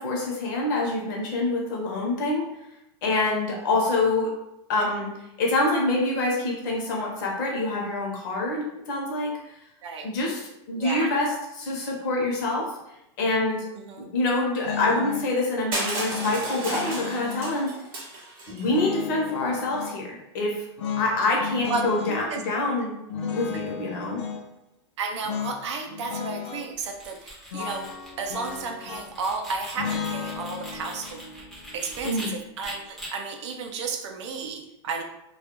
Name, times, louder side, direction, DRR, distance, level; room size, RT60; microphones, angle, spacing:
voice 1, 0.0-2.4 3.0-4.3 4.7-5.1 5.4-9.4 10.0-10.4 10.7-12.7 13.2-13.7 14.0-17.7 18.5-20.7 21.0-22.9 23.3-24.2 32.0-32.3, left 2 dB, 45° left, -2 dB, 0.7 m, -26 dB
voice 2, 10.7-11.1 13.7-14.1 21.6-22.4 25.0-27.9 28.2-31.2 31.7-35.0, right 4 dB, 85° right, 4 dB, 0.5 m, -33 dB
sound 1, 14.6-15.3 16.1-17.6 18.6-20.0 20.8-22.3 23.1-24.4 25.2-25.6 25.9-26.7 27.5-29.3 29.8-32.8, left 7 dB, 90° left, 0.5 m, -34 dB
Crushing, 15.7-18.6, right 2 dB, 50° right, 0.9 m, -32 dB
sound 2, 26.7-32.3 32.6-33.1, equal, ahead, 0.5 m, -42 dB
2.3 x 2.1 x 2.9 m, 0.87 s
supercardioid pair, 175°, 14 cm